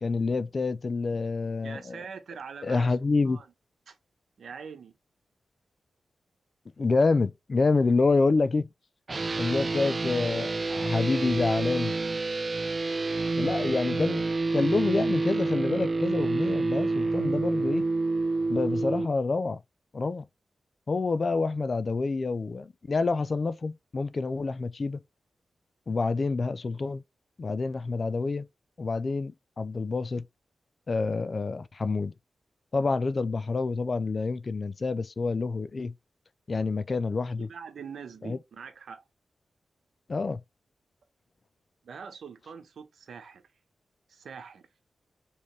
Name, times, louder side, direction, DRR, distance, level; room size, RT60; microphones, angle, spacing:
voice 1, 0.0-2.0 2.6-3.4 6.8-8.7 9.4-11.9 13.4-14.2 14.5-17.9 18.5-19.6 19.9-20.3 20.9-25.0 25.9-27.0 27.4-28.5 28.8-30.2 30.9-32.1 32.7-35.9 36.5-37.5 38.2-38.4 40.1-40.4, left 3 dB, 35° left, 0.4 m, -27 dB
voice 2, 1.6-3.0 3.2-3.5 3.9-4.0 4.4-4.9 37.4-39.0 41.8-43.4 44.1-44.6, right 6 dB, 85° right, 1.1 m, -43 dB
sound 1, 9.1-19.0, right 3 dB, 35° right, 0.4 m, -28 dB
5.1 x 3.2 x 3.2 m
wide cardioid pair, 160°, 0 cm